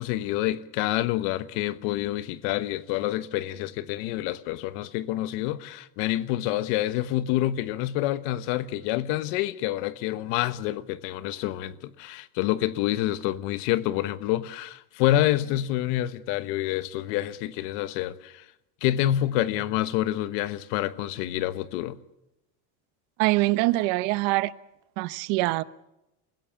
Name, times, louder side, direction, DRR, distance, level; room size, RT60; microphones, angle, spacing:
voice 1, 0.0-18.4 18.8-22.0, left 14 dB, 75° left, 1.3 m, -27 dB
voice 2, 23.2-24.5 25.0-25.6, right 20 dB, 70° right, 1.0 m, -24 dB
29.0 x 16.0 x 7.1 m
cardioid pair, 160°, 47 cm